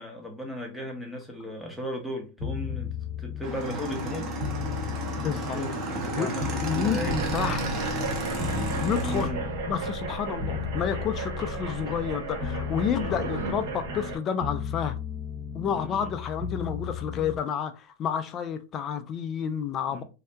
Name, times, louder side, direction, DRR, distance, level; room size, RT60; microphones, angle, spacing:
voice 1, 0.0-4.3 5.3-7.2 9.0-9.5 12.9-13.1 15.7-16.1 19.9-20.0, left 1 dB, ahead, 0.8 m, -36 dB
sound 1, 2.4-6.1 6.4-12.1 12.4-14.1 14.4-17.4, left 7 dB, 45° left, 0.9 m, -35 dB
Motorcycle / Engine, 3.4-9.3, right 2 dB, 35° right, 0.8 m, -33 dB
voice 2, 5.2-5.6 6.2-7.8 8.8-9.3 9.6-15.0 15.5-20.0, left 8 dB, 30° left, 0.4 m, -30 dB
sound 2, 7.0-14.2, right 3 dB, 75° right, 0.9 m, -34 dB
2.7 x 2.2 x 3.3 m
supercardioid pair, 140°, 0 cm